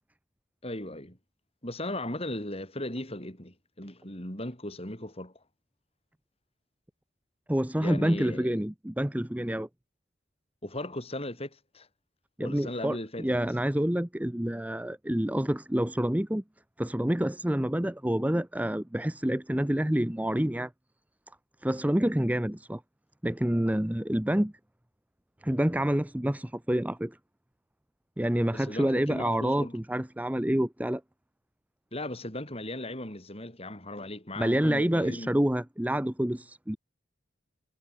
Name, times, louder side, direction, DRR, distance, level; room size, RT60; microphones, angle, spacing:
voice 1, 0.6-1.2 1.6-5.3 7.8-8.6 10.6-11.9 12.4-13.3 28.5-29.8 31.9-35.4 36.2-36.3, left 1 dB, 30° left, 7.7 m, -37 dB
voice 2, 7.5-9.7 12.4-16.4 16.8-20.7 21.6-22.8 23.2-24.5 25.4-27.2 28.2-31.0 34.4-36.8, equal, 10° right, 0.8 m, -28 dB
head